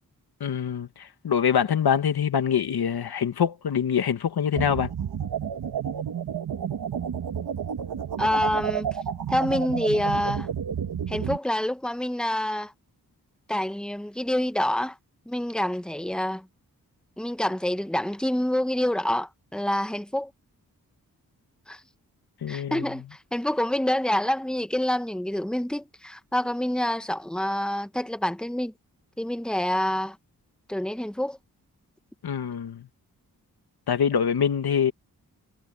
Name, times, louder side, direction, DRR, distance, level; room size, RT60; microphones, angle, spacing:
voice 1, 0.4-4.9 22.4-22.8 32.2-32.9 33.9-34.9, left 8 dB, 85° left, 1.7 m, -24 dB
sound 1, 4.6-11.4, right 8 dB, 85° right, 1.9 m, -30 dB
voice 2, 8.2-8.9 9.3-10.5 11.1-12.7 13.5-15.0 15.3-16.5 17.2-20.3 21.7-21.8 22.5-28.7 29.2-30.2 30.7-31.4, left 1 dB, ahead, 1.5 m, -27 dB
cardioid pair, 40°, 37 cm